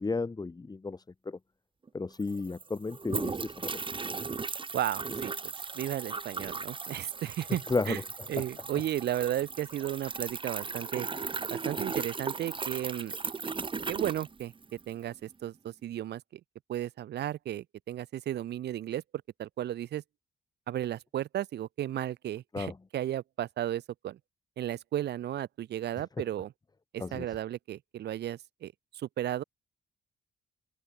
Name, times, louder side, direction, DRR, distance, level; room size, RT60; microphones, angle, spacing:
voice 1, 0.0-1.4 1.9-3.8 7.7-8.0 22.5-22.8 26.0-26.1 27.0-27.3, left 3 dB, 25° left, 1.8 m, -33 dB
sound 1, 1.9-2.0 2.1-14.9, right 4 dB, 30° right, 2.3 m, -37 dB
voice 2, 4.7-8.0 8.3-11.1 11.5-13.1 13.9-14.5 14.9-16.4 16.7-19.0 19.4-20.0 20.7-24.2 24.6-26.5 26.9-29.4, right 12 dB, 90° right, 2.9 m, -34 dB
cardioid pair, 115°, 17 cm